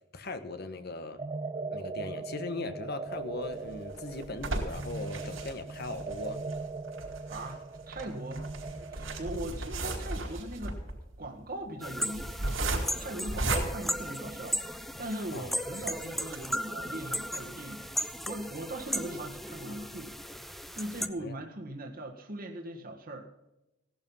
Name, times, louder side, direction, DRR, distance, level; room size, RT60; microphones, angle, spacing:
voice 1, 0.1-1.2 1.7-6.4 15.3-15.9 19.6-19.9 21.2-21.4, left 2 dB, 55° left, 9 dB, 1.4 m, -39 dB
sound 1, 1.2-9.5, right 3 dB, 25° right, 0.5 m, -40 dB
sound 2, 3.4-14.8 15.3-15.4 15.7-15.8 16.2-16.4, right 2 dB, 85° right, 4.6 m, -36 dB
voice 2, 7.3-8.5 8.9-10.8 11.2-20.1 20.4-23.3, right 1 dB, 50° right, 2 dB, 1.8 m, -40 dB
sound 3, 11.8-21.1, equal, ahead, 0.8 m, -36 dB
17.5 x 12.0 x 5.6 m, 0.94 s
head